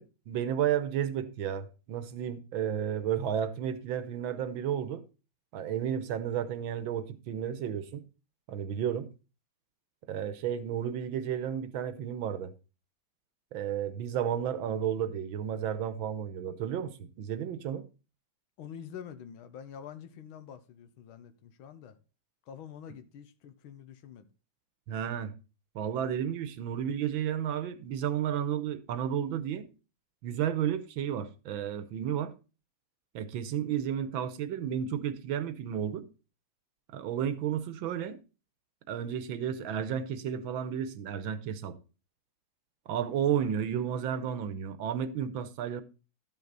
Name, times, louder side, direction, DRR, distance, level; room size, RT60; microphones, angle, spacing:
voice 1, 0.0-5.0 5.5-8.0 8.5-9.1 10.1-12.5 13.5-17.8 24.9-25.3 25.7-29.7 30.2-32.3 33.1-36.0 36.9-38.2 38.9-41.8 42.9-45.8, right 9 dB, 75° right, 1.5 m, -32 dB
voice 2, 18.6-22.0 22.5-24.3, left 8 dB, 80° left, 1.6 m, -46 dB
12.0 x 5.9 x 4.0 m
omnidirectional pair, 2.3 m